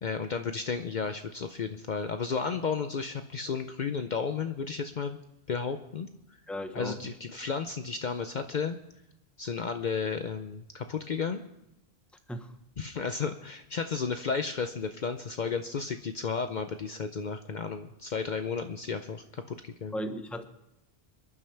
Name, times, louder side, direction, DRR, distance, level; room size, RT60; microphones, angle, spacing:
voice 1, 0.0-5.2 5.5-6.1 6.7-8.8 9.4-11.4 12.8-19.9, left 5 dB, 55° left, 8 dB, 0.7 m, -33 dB
voice 2, 6.5-7.1 12.3-12.5 19.9-20.4, equal, ahead, 7 dB, 0.9 m, -36 dB
27.0 x 11.0 x 3.4 m, 0.86 s
omnidirectional pair, 1.0 m